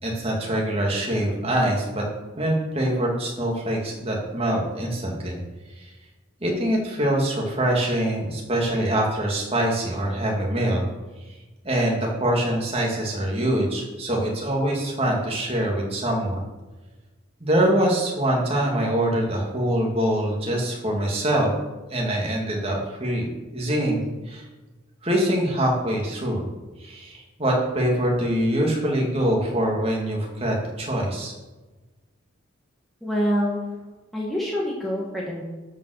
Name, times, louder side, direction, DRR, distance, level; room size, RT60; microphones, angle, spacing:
voice 1, 0.0-2.0 2.4-5.4 6.4-10.8 11.6-16.4 17.4-21.5 21.9-23.3 23.5-24.4 25.0-26.4 26.8-31.3, right 1 dB, 30° right, -1 dB, 2.5 m, -24 dB
voice 2, 33.0-33.6 34.1-35.4, equal, ahead, -5 dB, 1.7 m, -25 dB
12.5 x 5.6 x 6.7 m, 1.2 s
head